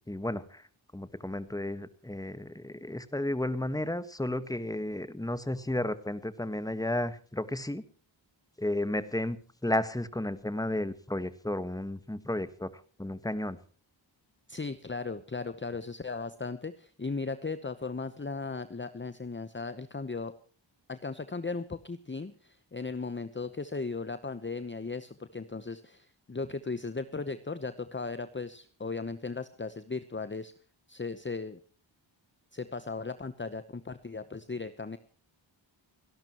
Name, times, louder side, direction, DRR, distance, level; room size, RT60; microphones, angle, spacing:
voice 1, 0.1-0.6 0.9-7.8 8.6-12.7 13.0-13.6, left 1 dB, 10° left, 13 dB, 1.4 m, -33 dB
voice 2, 14.5-20.3 20.9-30.5 30.9-31.6 32.5-35.0, left 4 dB, 25° left, 12 dB, 0.9 m, -37 dB
29.5 x 12.0 x 3.0 m, 0.42 s
wide cardioid pair, 80°, 47 cm